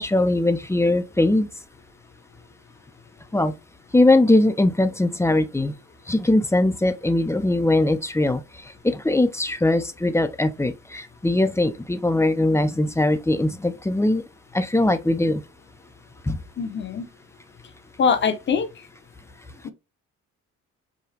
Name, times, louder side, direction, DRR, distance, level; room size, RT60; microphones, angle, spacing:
voice 1, 0.0-1.5 3.3-3.6 3.9-5.7 6.1-8.4 8.8-14.2 14.5-15.4 16.3-16.4, left 2 dB, 10° left, 0.5 m, -21 dB
voice 2, 16.6-17.0 18.0-18.7 19.6-19.7, left 6 dB, 40° left, 0.8 m, -22 dB
4.9 x 2.3 x 2.8 m
cardioid pair, 90°, 30 cm